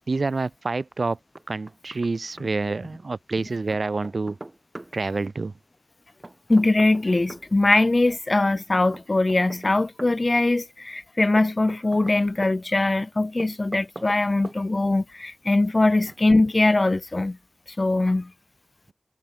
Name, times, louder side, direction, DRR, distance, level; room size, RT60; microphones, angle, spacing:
voice 1, 0.1-1.2 1.5-4.4 4.9-5.5, right 3 dB, 60° right, 7.6 m, -27 dB
Knock, 1.4-2.1 2.4-2.5 3.7-4.9 6.2-7.5 8.9-10.2 11.4-12.6 13.4-14.2 14.4-14.6, right 2 dB, 30° right, 6.6 m, -41 dB
voice 2, 6.5-17.4 17.8-18.3, left 2 dB, 35° left, 4.3 m, -21 dB
wide cardioid pair, 85°, 0 cm